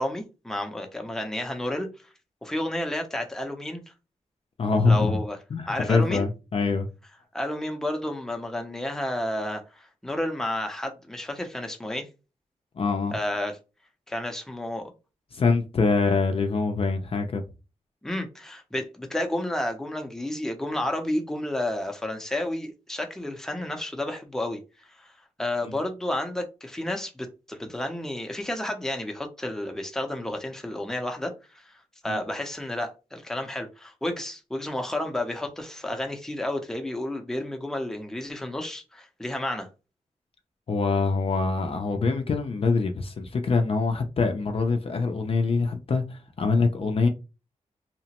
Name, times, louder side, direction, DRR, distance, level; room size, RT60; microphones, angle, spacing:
voice 1, 0.0-1.9 2.4-3.8 4.9-5.4 5.7-6.3 7.3-12.1 13.1-13.6 14.1-14.9 18.0-25.1 25.4-31.8 32.0-39.7, left 1 dB, 5° left, 0.6 m, -31 dB
voice 2, 4.6-5.1 5.5-6.9 12.8-13.2 15.3-17.4 25.7-25.8 32.1-32.2 40.7-47.1, left 4 dB, 50° left, 0.4 m, -24 dB
2.8 x 2.1 x 2.9 m
cardioid pair, 70°, 12 cm